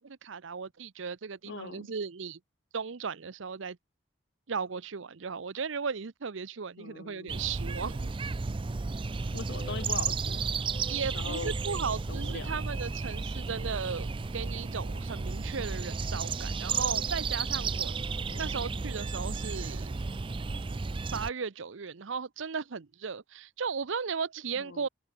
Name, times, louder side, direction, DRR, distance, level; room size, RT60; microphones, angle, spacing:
voice 1, 0.0-2.4 2.7-3.8 4.5-8.1 10.9-18.0 18.4-20.0 21.1-24.9, right 5 dB, 75° right, 0.7 m, -36 dB
voice 2, 1.5-1.9 6.8-7.3 9.3-10.4 11.1-11.5 12.1-12.5 18.3-18.9 24.5-24.9, left 5 dB, 60° left, 0.6 m, -41 dB
sound 1, 7.3-21.3, right 4 dB, 25° right, 0.4 m, -33 dB
open air
head